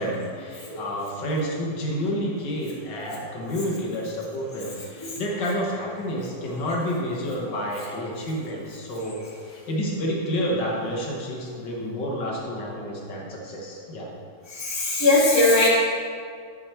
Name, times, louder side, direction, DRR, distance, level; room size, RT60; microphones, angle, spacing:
voice 1, 0.0-9.2 9.5-14.1, equal, 75° left, -3 dB, 1.9 m, -29 dB
voice 2, 14.5-15.7, left 2 dB, 15° left, -6 dB, 1.6 m, -20 dB
10.5 x 4.8 x 4.4 m, 2.2 s
omnidirectional pair, 1.9 m